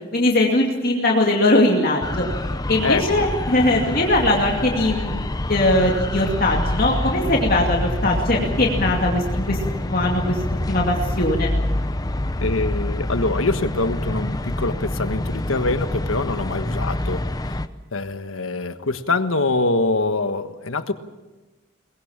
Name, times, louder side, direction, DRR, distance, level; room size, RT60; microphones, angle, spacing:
voice 1, 0.1-2.3 2.7-5.2 5.5-9.6 9.8-10.4 10.7-11.5, left 1 dB, 45° left, -1 dB, 2.4 m, -20 dB
sound 1, 2.0-17.7, left 1 dB, 20° left, 0.7 m, -26 dB
voice 2, 2.8-3.3 12.4-17.5 17.9-20.9, left 3 dB, 85° left, 9 dB, 1.4 m, -24 dB
23.0 x 20.0 x 7.3 m, 1.1 s
head